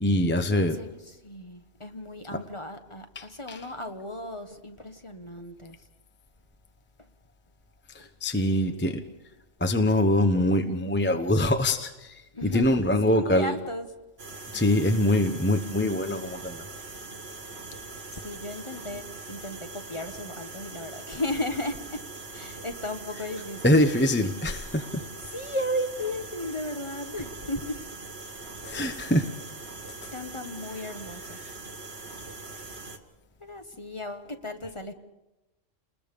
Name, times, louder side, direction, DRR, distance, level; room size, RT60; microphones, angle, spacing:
voice 1, 0.0-0.8 2.3-2.4 3.2-3.6 7.9-9.0 9.6-13.5 14.5-16.6 23.6-25.0 28.6-29.3, left 1 dB, 10° left, 7 dB, 0.9 m, -24 dB
voice 2, 0.6-5.9 7.0-7.1 8.0-8.1 12.3-13.9 18.1-23.7 25.2-27.9 30.1-31.4 33.4-34.9, left 1 dB, 25° left, 6 dB, 1.2 m, -35 dB
sound 1, 14.2-33.0, right 3 dB, 55° right, 1.9 m, -42 dB
29.5 x 21.0 x 5.3 m, 1.0 s
omnidirectional pair, 1.3 m